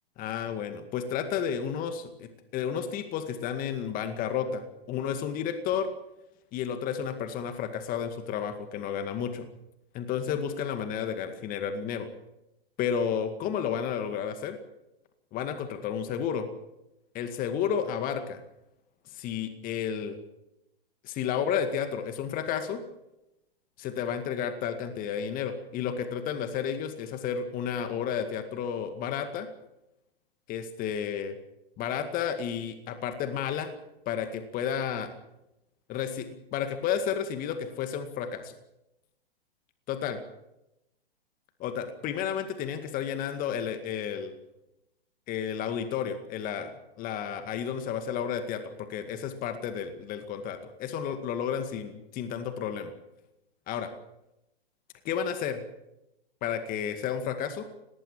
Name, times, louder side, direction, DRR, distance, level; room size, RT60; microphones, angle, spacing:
voice 1, 0.2-5.9 6.5-9.5 9.9-12.1 12.8-14.6 15.3-16.5 17.1-18.4 19.1-20.2 21.0-22.8 23.8-29.5 30.5-31.4 31.8-33.7 34.1-35.1 35.9-36.3 36.5-38.5 39.9-40.2 41.6-44.3 45.3-46.7 47.0-52.9 53.7-53.9 55.0-55.6 56.4-57.6, left 8 dB, 30° left, 9 dB, 2.1 m, -32 dB
19.0 x 19.0 x 7.5 m, 0.89 s
hypercardioid pair, 120°, 30 cm